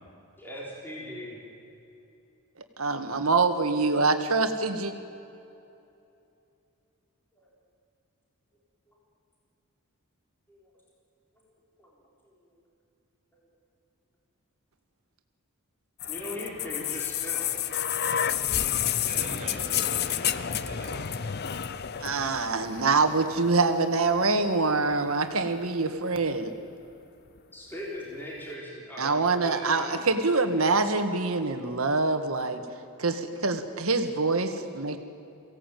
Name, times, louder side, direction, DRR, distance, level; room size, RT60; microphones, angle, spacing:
voice 1, 0.4-1.4 7.4-7.5 10.5-10.8 11.4-11.5 11.8-11.9 12.2-12.5 16.0-17.6 27.5-30.0, equal, 10° left, -5 dB, 3.9 m, -40 dB
voice 2, 2.8-4.9 22.0-26.5 29.0-32.6 33.0-35.0, right 3 dB, 75° right, 7 dB, 1.7 m, -25 dB
sound 1, 16.0-23.9 24.9-25.0, left 9 dB, 45° left, 0.6 m, -30 dB
voice 3, 19.0-21.1, right 2 dB, 30° right, 0 dB, 5.5 m, -42 dB
23.0 x 17.0 x 9.2 m, 2.7 s
head